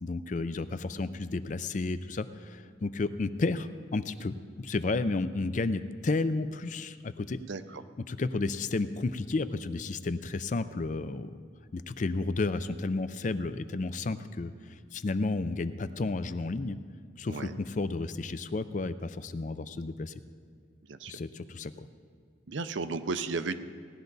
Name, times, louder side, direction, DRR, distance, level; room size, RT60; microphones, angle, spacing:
voice 1, 0.0-7.4 8.1-11.4 11.7-14.5 14.9-16.8 17.2-20.1 21.1-21.9, left 3 dB, 40° left, 12 dB, 0.4 m, -32 dB
voice 2, 7.5-7.8 17.3-17.6 20.8-21.1 22.5-23.6, right 4 dB, 70° right, 11 dB, 0.6 m, -34 dB
17.5 x 11.5 x 4.0 m, 2.1 s
head